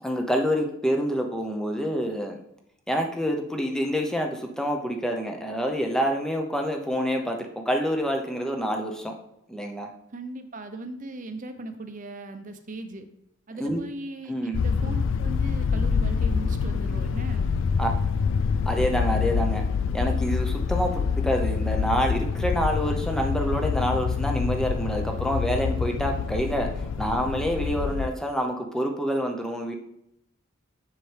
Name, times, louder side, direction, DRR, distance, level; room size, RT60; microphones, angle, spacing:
voice 1, 0.0-2.4 2.9-9.1 9.5-9.9 13.6-13.8 14.3-14.6 17.8-17.9 18.7-19.6 19.9-29.7, equal, 5° left, 2 dB, 0.7 m, -27 dB
voice 2, 10.1-13.1 13.5-17.5, right 2 dB, 40° right, 8 dB, 0.7 m, -38 dB
sound 1, 14.5-28.1, left 5 dB, 65° left, 0.3 m, -26 dB
7.3 x 6.7 x 3.3 m, 0.79 s
head